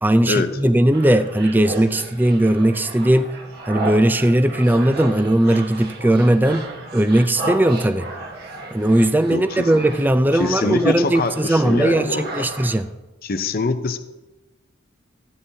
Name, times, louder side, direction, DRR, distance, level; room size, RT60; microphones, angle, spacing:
voice 1, 0.0-3.3 3.7-6.6 6.9-8.1 8.7-12.9, right 1 dB, 10° right, 10 dB, 0.4 m, -18 dB
sound 1, 0.9-12.8, right 2 dB, 50° right, 1.4 m, -34 dB
voice 2, 9.3-9.7 10.3-12.5 13.2-14.0, left 3 dB, 45° left, 9 dB, 0.6 m, -24 dB
15.5 x 9.7 x 2.8 m, 1.1 s
head